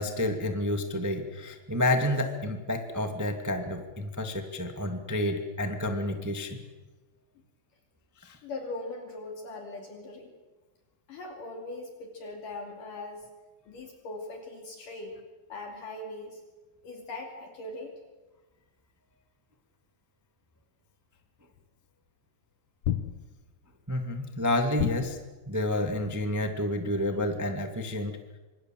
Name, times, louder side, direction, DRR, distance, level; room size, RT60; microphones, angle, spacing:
voice 1, 0.0-6.6 8.2-8.4 23.9-25.2 25.5-28.2, left 1 dB, 10° right, 5 dB, 0.8 m, -29 dB
voice 2, 8.4-10.3 11.1-13.3 13.7-15.1 15.5-16.4 16.8-17.9, left 2 dB, 55° left, 3 dB, 4.1 m, -40 dB
sound 1, 21.6-21.7 22.8-23.6 24.8-25.5, left 11 dB, 80° left, 1.6 m, -32 dB
27.5 x 25.5 x 7.7 m, 1.2 s
omnidirectional pair, 4.5 m